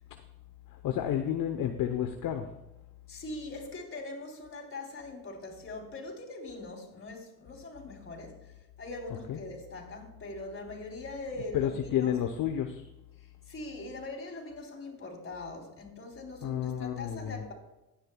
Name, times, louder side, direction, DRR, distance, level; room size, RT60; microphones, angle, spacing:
voice 1, 0.7-2.5 9.3-9.4 11.5-12.8 16.4-17.4, left 10 dB, 50° left, 6 dB, 1.0 m, -31 dB
voice 2, 3.1-12.1 13.2-17.5, left 2 dB, 30° left, 0 dB, 3.9 m, -42 dB
16.0 x 10.0 x 2.3 m, 0.98 s
cardioid pair, 100°, 42 cm